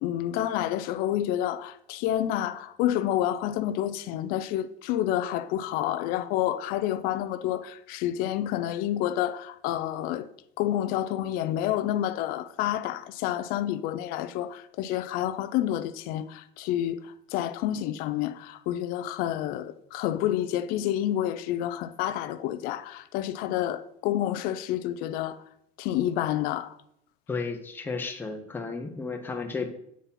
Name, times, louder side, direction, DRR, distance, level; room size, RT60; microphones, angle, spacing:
voice 1, 0.0-10.3 10.6-25.4 25.8-26.8, left 12 dB, 60° left, 0.5 m, -29 dB
voice 2, 27.3-29.7, left 4 dB, 10° left, 0.8 m, -33 dB
8.5 x 4.2 x 5.5 m
cardioid pair, 170°, 17 cm